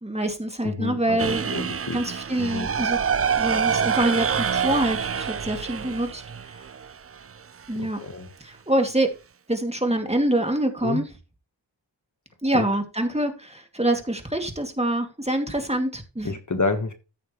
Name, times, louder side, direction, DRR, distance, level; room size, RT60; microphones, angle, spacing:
voice 1, 0.0-1.5 1.9-3.0 3.4-6.2 7.7-8.0 8.4-9.1 9.5-11.0 12.4-16.4, right 1 dB, 15° right, 2.4 m, -25 dB
voice 2, 0.6-2.0 2.4-2.7 7.7-8.3 10.8-11.0 12.5-12.7 16.2-16.9, left 3 dB, 40° left, 1.4 m, -29 dB
sound 1, 1.2-7.2, right 7 dB, 35° right, 0.5 m, -26 dB
14.0 x 6.6 x 3.1 m
cardioid pair, 50°, 44 cm